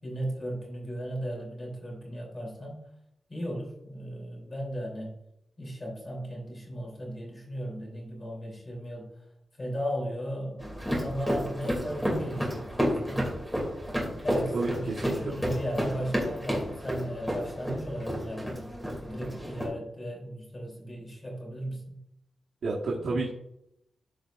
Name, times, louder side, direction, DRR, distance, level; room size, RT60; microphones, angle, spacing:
voice 1, 0.0-2.8 3.3-5.1 5.6-9.2 9.6-10.6 11.0-13.3 14.2-22.0, equal, 25° left, -3 dB, 3.3 m, -36 dB
sound 1, 10.6-19.7, equal, ahead, 2.6 m, -31 dB
voice 2, 14.5-15.4 22.6-23.3, right 3 dB, 85° right, -5 dB, 1.4 m, -30 dB
13.5 x 5.0 x 2.5 m, 0.82 s
wide cardioid pair, 160°, 0 cm